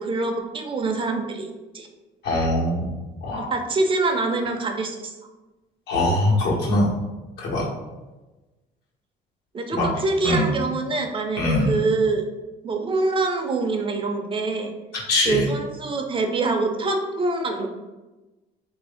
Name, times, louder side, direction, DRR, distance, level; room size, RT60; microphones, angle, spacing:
voice 1, 0.0-1.5 1.7-1.9 3.5-5.1 9.5-11.4 11.7-12.2 12.6-14.7 15.3-17.7, right 3 dB, 30° right, 4 dB, 0.5 m, -25 dB
voice 2, 2.2-2.9 3.2-3.5 5.9-6.9 7.4-7.6 9.8-9.9 10.2-10.4 11.4-11.7 15.1-15.5, left 1 dB, 80° left, -4 dB, 1.2 m, -22 dB
3.1 x 2.6 x 3.4 m, 1.1 s
cardioid pair, 110°, 17 cm